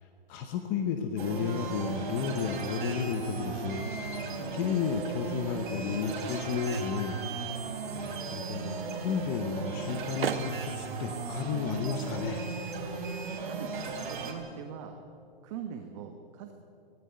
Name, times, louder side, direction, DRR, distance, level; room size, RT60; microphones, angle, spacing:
voice 1, 0.0-12.4, left 6 dB, 20° left, 6 dB, 0.9 m, -33 dB
sound 1, 1.2-14.3, right 4 dB, 55° right, 4.0 m, -36 dB
sound 2, 4.8-13.7, right 8 dB, 75° right, 1.2 m, -44 dB
voice 2, 13.3-15.0 15.4-16.5, right 8 dB, 30° right, 5 dB, 1.3 m, -42 dB
18.0 x 16.5 x 8.9 m, 2.6 s
hypercardioid pair, 160°, 30 cm